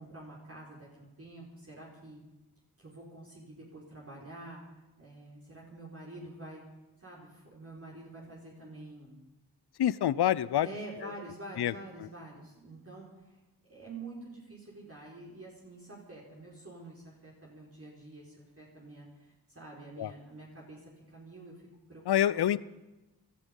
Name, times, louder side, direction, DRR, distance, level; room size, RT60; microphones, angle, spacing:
voice 1, 0.0-2.2 2.8-4.6 5.0-6.6 7.0-9.2 10.6-13.4 13.7-21.5 21.9-22.5, right 2 dB, 35° right, -4 dB, 5.0 m, -47 dB
voice 2, 9.8-10.7 11.0-11.1 11.6-11.7 12.0-12.1 20.0-20.1 22.1-22.6, left 11 dB, 80° left, 19 dB, 0.6 m, -27 dB
18.0 x 13.5 x 5.5 m, 1.0 s
cardioid pair, 55°, 38 cm